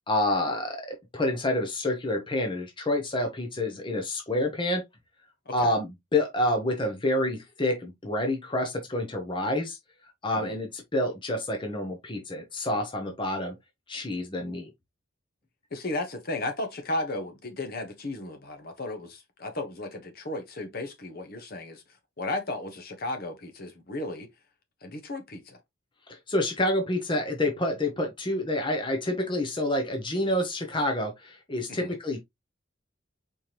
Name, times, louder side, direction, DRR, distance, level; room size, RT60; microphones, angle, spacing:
voice 1, 0.1-4.8 5.5-9.8 10.2-13.6 13.9-14.7 26.1-32.2, left 1 dB, 25° left, 0.9 m, -28 dB
voice 2, 15.7-21.8 22.2-24.3 24.8-25.6 31.8-31.9, left 2 dB, 50° left, 1.1 m, -34 dB
4.6 x 3.5 x 2.9 m
head